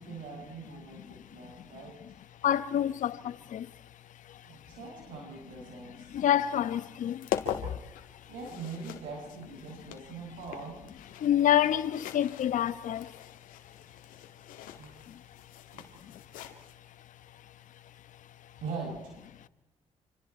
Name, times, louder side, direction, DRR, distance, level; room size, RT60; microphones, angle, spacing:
voice 1, 0.0-2.0 4.4-6.2 8.3-10.8 14.8-14.9 15.7-15.9 18.6-19.1, right 4 dB, 85° right, 6.4 m, -42 dB
voice 2, 2.4-3.2 3.5-3.6 6.1-7.2 11.2-13.0, left 10 dB, 70° left, 1.1 m, -26 dB
sound 1, 5.9-16.7, left 10 dB, 90° left, 2.1 m, -42 dB
27.5 x 26.0 x 4.4 m
cardioid pair, 80°, 14 cm